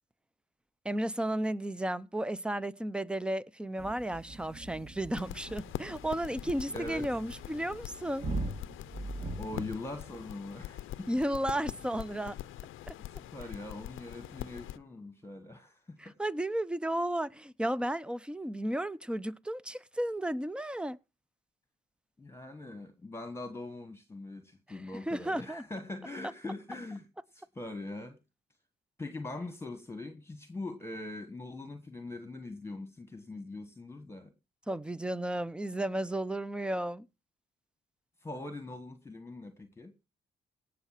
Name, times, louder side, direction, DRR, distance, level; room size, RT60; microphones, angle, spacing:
voice 1, 0.8-8.3 11.1-12.4 12.9-13.0 16.0-21.0 24.7-25.6 34.7-37.1, right 1 dB, 5° right, 0.6 m, -33 dB
sound 1, 3.8-10.4, right 2 dB, 30° right, 2.0 m, -41 dB
sound 2, 5.1-14.8, left 13 dB, 85° left, 0.7 m, -44 dB
voice 2, 6.7-7.1 9.4-11.1 13.0-16.2 22.2-28.2 29.0-34.3 38.2-39.9, left 2 dB, 10° left, 1.5 m, -42 dB
17.5 x 6.6 x 5.8 m
cardioid pair, 90°, 20 cm